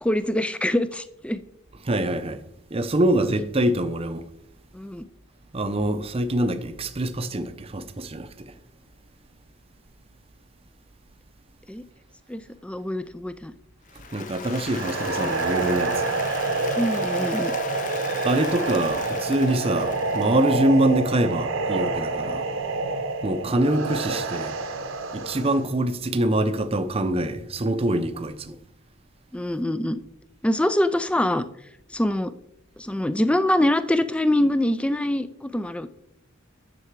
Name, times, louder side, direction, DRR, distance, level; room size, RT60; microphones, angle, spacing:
voice 1, 0.0-1.4 4.7-5.1 11.7-11.8 12.3-13.5 16.8-17.5 29.3-30.0 30.4-31.4 31.9-32.3 32.8-35.9, left 1 dB, 5° left, 0.3 m, -24 dB
voice 2, 1.8-2.4 2.7-4.2 5.5-8.3 14.1-16.1 18.2-22.5 23.2-24.5 25.1-28.5, right 1 dB, 30° right, 0.6 m, -24 dB
Applause, 13.9-21.1, left 6 dB, 40° left, 0.7 m, -38 dB
sound 1, 14.5-25.6, right 3 dB, 75° right, 1.1 m, -27 dB
9.8 x 6.9 x 4.7 m
head